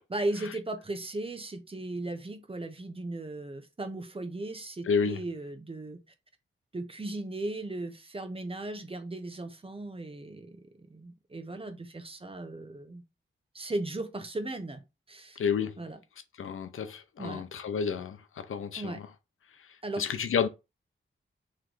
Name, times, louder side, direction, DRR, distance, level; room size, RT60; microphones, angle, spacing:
voice 1, 0.1-6.0 6.7-13.0 13.5-14.8 15.1-15.4 15.8-16.0 17.2-17.4 18.8-19.0 19.8-20.0, right 2 dB, 25° right, 0.8 m, -37 dB
voice 2, 4.9-5.2 15.4-15.8 16.4-19.0 20.0-20.5, left 6 dB, 80° left, 0.5 m, -30 dB
3.2 x 3.1 x 3.8 m
wide cardioid pair, 80°, 21 cm